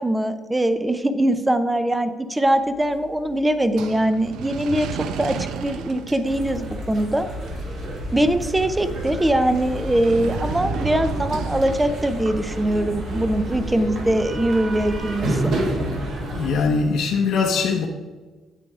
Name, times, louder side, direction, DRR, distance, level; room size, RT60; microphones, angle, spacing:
voice 1, 0.0-4.9 5.2-5.4 5.6-7.3 8.1-15.5, right 1 dB, 10° right, 0.5 m, -22 dB
sound 1, 2.6-15.7, right 6 dB, 80° right, 0.6 m, -36 dB
sound 2, 6.2-16.7, right 1 dB, 55° right, 2.2 m, -29 dB
voice 2, 16.3-17.9, left 5 dB, 75° left, 0.9 m, -21 dB
9.2 x 8.3 x 3.6 m
cardioid pair, 175°, 0 cm